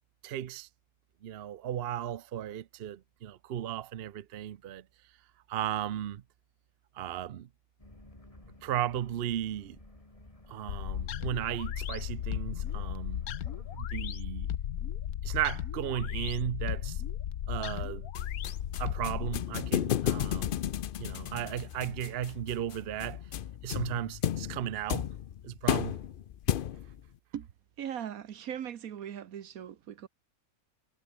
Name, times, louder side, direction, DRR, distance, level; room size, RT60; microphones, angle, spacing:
voice 1, 0.2-0.7 1.2-4.8 5.5-6.2 7.0-7.5 8.6-9.8 10.5-13.3 13.7-14.5 15.2-17.0 17.5-18.1 18.8-20.5 21.0-23.2 23.6-25.1 25.4-26.0, right 11 dB, 55° right, 0.7 m, -35 dB
sound 1, 7.8-13.8, left 1 dB, 25° left, 3.4 m, -54 dB
sound 2, 10.7-19.4, left 10 dB, 85° left, 1.4 m, -35 dB
sound 3, 18.1-27.0, left 10 dB, 60° left, 0.5 m, -33 dB
voice 2, 27.8-30.1, right 9 dB, 75° right, 1.4 m, -39 dB
omnidirectional pair, 1.5 m